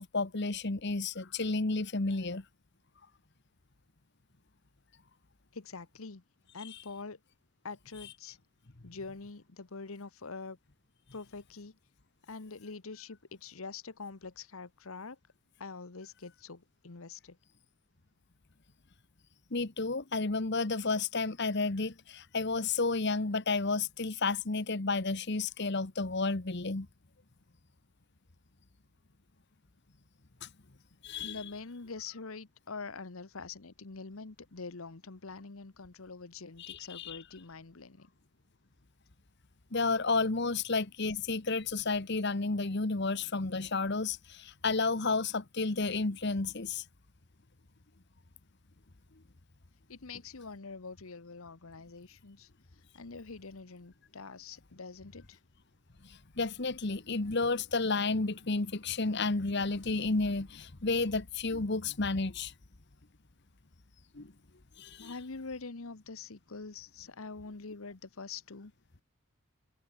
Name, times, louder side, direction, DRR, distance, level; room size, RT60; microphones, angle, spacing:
voice 1, 0.0-2.4 19.5-26.9 30.4-30.5 31.0-31.4 36.6-37.2 39.7-46.8 56.4-62.5 64.1-64.3 64.8-65.1, left 3 dB, 50° left, 1.2 m, -31 dB
voice 2, 5.5-6.2 6.5-7.2 7.6-8.4 8.8-10.6 11.1-11.7 12.3-15.2 15.6-17.4 31.1-38.1 49.9-52.5 52.9-55.4 65.0-68.7, left 4 dB, 70° left, 1.1 m, -45 dB
head